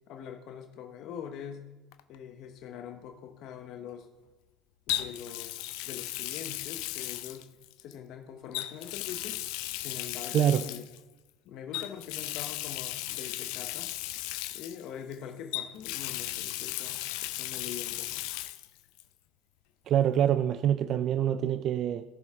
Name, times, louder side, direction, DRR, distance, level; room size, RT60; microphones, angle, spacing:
voice 1, 0.1-1.7 2.1-4.1 4.9-7.5 7.8-9.4 9.7-10.8 11.4-14.0 14.5-18.3, left 8 dB, 60° left, 6 dB, 1.1 m, -43 dB
Water tap faucet, 1.9-2.1 4.9-7.9 8.5-11.0 11.7-15.1 15.5-18.7 19.0-19.1 20.6-20.7, left 16 dB, 75° left, 0.7 m, -36 dB
voice 2, 19.9-22.0, right 10 dB, 45° right, 12 dB, 0.5 m, -25 dB
17.5 x 6.5 x 3.7 m, 1.1 s
supercardioid pair, 120°, 0 cm